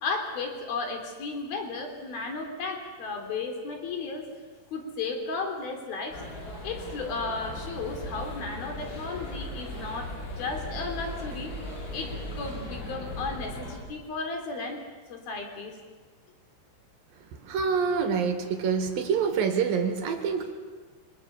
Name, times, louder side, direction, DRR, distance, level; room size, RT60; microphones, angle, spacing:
voice 1, 0.0-4.3 4.7-6.2 6.6-11.5 11.9-14.8 15.1-15.8, left 3 dB, 50° left, 4 dB, 4.8 m, -34 dB
sound 1, 6.1-13.8, left 1 dB, 80° left, 8.8 m, -38 dB
voice 2, 17.1-20.5, right 6 dB, 60° right, 6 dB, 2.8 m, -27 dB
27.0 x 24.0 x 6.9 m, 1.4 s
omnidirectional pair, 5.9 m